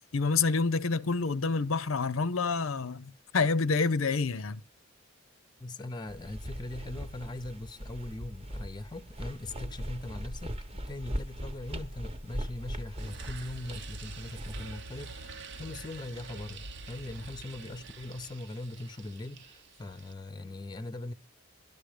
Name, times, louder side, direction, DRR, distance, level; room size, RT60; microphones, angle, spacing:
voice 1, 0.1-4.6, left 4 dB, 80° left, 0.7 m, -28 dB
voice 2, 5.6-21.1, left 2 dB, 20° left, 0.7 m, -41 dB
sound 1, 6.1-14.6, equal, 30° right, 0.9 m, -40 dB
sound 2, 13.0-20.1, right 3 dB, 60° right, 0.8 m, -46 dB
12.5 x 11.5 x 5.0 m
head